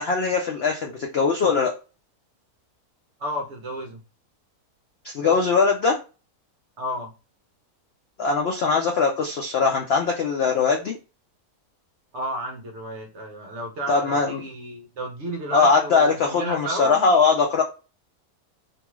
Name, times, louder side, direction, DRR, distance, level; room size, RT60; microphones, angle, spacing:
voice 1, 0.0-1.8 5.0-6.0 8.2-11.0 13.9-14.4 15.5-17.6, left 4 dB, 80° left, 2 dB, 0.5 m, -21 dB
voice 2, 3.2-4.0 5.2-5.4 6.8-7.1 12.1-17.2, equal, 65° right, 3 dB, 0.7 m, -32 dB
2.7 x 2.3 x 3.0 m, 0.31 s
omnidirectional pair, 1.7 m